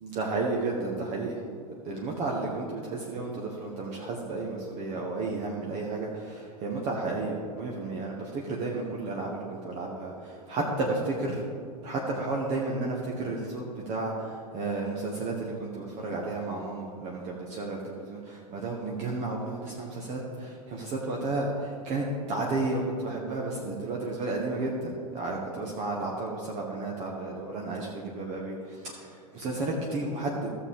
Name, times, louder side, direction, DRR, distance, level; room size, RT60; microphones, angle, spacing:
voice 1, 0.0-1.3 1.8-11.4 11.8-30.5, right 2 dB, 35° right, -1 dB, 1.3 m, -32 dB
15.0 x 6.8 x 3.7 m, 2.3 s
figure-of-eight pair, 90°, 19 cm